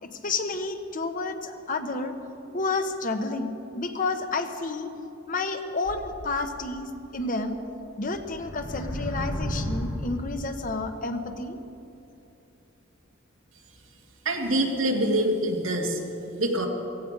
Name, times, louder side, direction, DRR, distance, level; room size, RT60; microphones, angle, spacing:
voice 1, 0.0-2.1 2.5-4.9 5.3-7.6 8.0-11.6, left 3 dB, 40° left, 7 dB, 1.0 m, -30 dB
sound 1, 5.8-6.8 7.4-7.5 8.0-10.5, equal, 80° left, 2.8 m, -33 dB
voice 2, 14.3-16.0 16.4-16.7, right 1 dB, 85° right, 1 dB, 2.1 m, -25 dB
16.0 x 16.0 x 5.4 m, 2.8 s
head